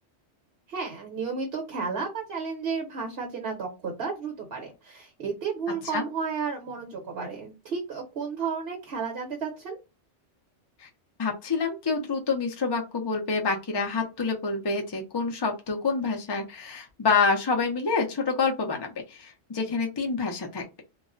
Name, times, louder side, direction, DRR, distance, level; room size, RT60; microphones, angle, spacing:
voice 1, 0.7-9.8, right 5 dB, 60° right, 2 dB, 1.0 m, -32 dB
voice 2, 11.2-20.8, left 4 dB, 35° left, 2 dB, 0.4 m, -27 dB
2.3 x 2.1 x 3.7 m, 0.26 s
omnidirectional pair, 1.2 m